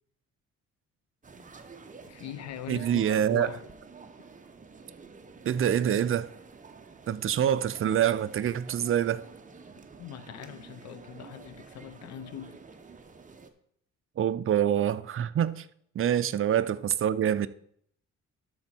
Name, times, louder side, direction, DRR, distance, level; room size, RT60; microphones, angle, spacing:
sound 1, 1.2-13.5, right 4 dB, 25° right, 0.9 m, -49 dB
voice 1, 2.1-3.6 10.0-12.6 16.0-16.1, left 10 dB, 60° left, 0.7 m, -42 dB
voice 2, 2.7-3.5 5.4-6.3 7.1-9.2 14.2-15.6 16.0-17.5, right 10 dB, 45° right, 0.5 m, -26 dB
13.0 x 4.4 x 4.4 m
cardioid pair, 90°, 30 cm